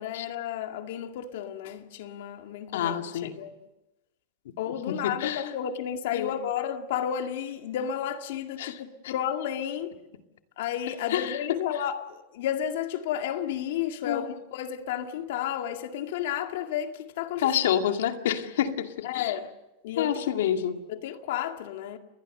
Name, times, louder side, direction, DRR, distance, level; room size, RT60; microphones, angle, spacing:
voice 1, 0.0-2.9 3.2-3.5 4.6-9.9 10.6-17.5 19.0-19.5 19.8-20.2 20.9-22.0, left 9 dB, 70° left, 2.1 m, -32 dB
voice 2, 2.7-3.4 4.9-5.6 6.1-6.3 8.6-9.1 11.1-11.8 14.1-14.3 17.4-19.4 20.0-20.8, left 10 dB, 85° left, 2.2 m, -28 dB
30.0 x 21.0 x 6.7 m
supercardioid pair, 160°, 0 cm